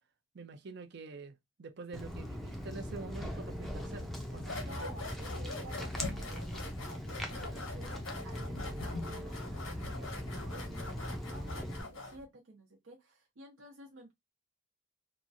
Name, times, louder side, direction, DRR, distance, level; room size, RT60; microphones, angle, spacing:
voice 1, 0.3-4.6, right 3 dB, 55° right, 0.5 m, -46 dB
Walk footsteps, 1.9-11.8, equal, ahead, 0.4 m, -40 dB
sound 1, 4.4-12.2, left 2 dB, 85° left, 1.1 m, -43 dB
voice 2, 4.5-6.6 7.3-8.0 8.2-14.1, right 1 dB, 75° right, 0.8 m, -53 dB
2.9 x 2.4 x 2.5 m
head